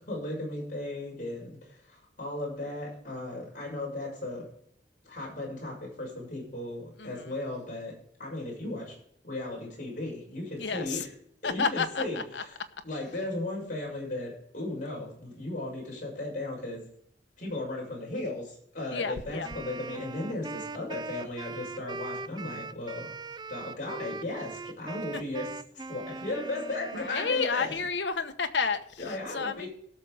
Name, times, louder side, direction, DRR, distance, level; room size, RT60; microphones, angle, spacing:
voice 1, 0.0-4.5 5.0-7.9 8.2-9.0 9.2-11.0 11.4-12.5 12.8-16.8 17.4-23.2 23.5-25.5 25.7-27.7 29.0-29.7, left 2 dB, 45° left, -3 dB, 6.4 m, -36 dB
voice 2, 7.0-7.3 10.6-11.1 11.4-12.4 18.9-19.5 25.1-25.2 26.9-29.7, left 5 dB, 75° left, 8 dB, 1.2 m, -31 dB
Wind instrument woodwind instrument, 19.4-27.8, right 3 dB, 25° right, 0.4 m, -41 dB
17.5 x 6.6 x 4.9 m, 0.66 s
head